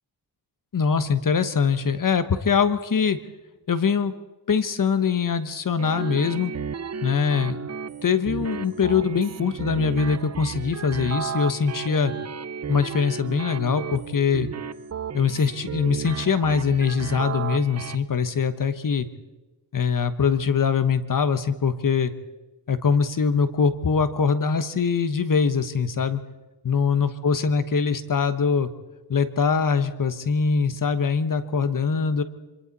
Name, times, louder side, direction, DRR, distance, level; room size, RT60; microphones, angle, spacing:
voice 1, 0.7-3.2 3.7-4.2 4.5-6.5 7.0-7.6 8.0-12.1 12.7-14.5 15.1-19.1 19.7-22.1 22.7-26.2 26.6-28.7 29.1-32.2, left 6 dB, 50° left, 11 dB, 1.2 m, -23 dB
sound 1, 5.8-18.0, right 6 dB, 40° right, 0.6 m, -33 dB
27.0 x 25.0 x 4.2 m, 1.1 s
wide cardioid pair, 100°, 41 cm